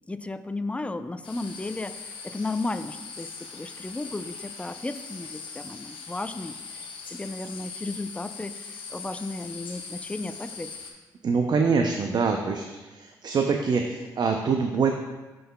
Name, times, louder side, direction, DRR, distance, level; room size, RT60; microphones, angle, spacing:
voice 1, 0.1-6.6 7.1-10.7, left 2 dB, 15° left, 11 dB, 0.4 m, -34 dB
sound 1, 1.2-10.9, left 5 dB, 70° left, 0.8 m, -41 dB
voice 2, 11.2-12.7 12.9-14.9, right 5 dB, 50° right, 3 dB, 0.5 m, -24 dB
11.0 x 3.9 x 2.2 m, 1.2 s
supercardioid pair, 50°, 9 cm